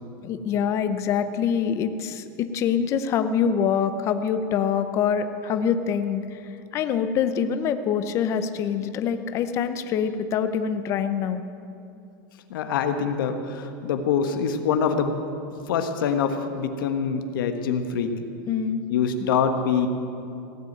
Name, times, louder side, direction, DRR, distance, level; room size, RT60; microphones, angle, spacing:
voice 1, 0.2-11.4 18.5-18.8, left 7 dB, 25° left, 10 dB, 0.6 m, -25 dB
voice 2, 12.5-15.2 15.7-18.1 18.9-19.9, left 6 dB, 85° left, 7 dB, 1.4 m, -24 dB
17.5 x 8.1 x 9.2 m, 2.6 s
supercardioid pair, 170°, 11 cm